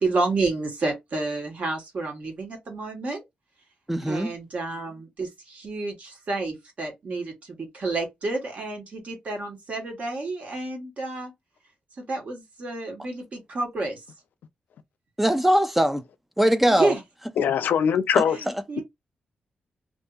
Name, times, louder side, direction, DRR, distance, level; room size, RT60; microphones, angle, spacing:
voice 1, 0.0-3.2 4.1-11.3 12.0-14.0 16.7-17.0 18.3-18.8, right 3 dB, 50° right, 1.2 m, -30 dB
voice 2, 3.9-4.3 15.2-16.0 16.4-16.9, equal, 5° right, 0.3 m, -21 dB
voice 3, 17.4-18.4, left 8 dB, 85° left, 0.4 m, -21 dB
2.6 x 2.6 x 2.3 m
wide cardioid pair, 140°, 3 cm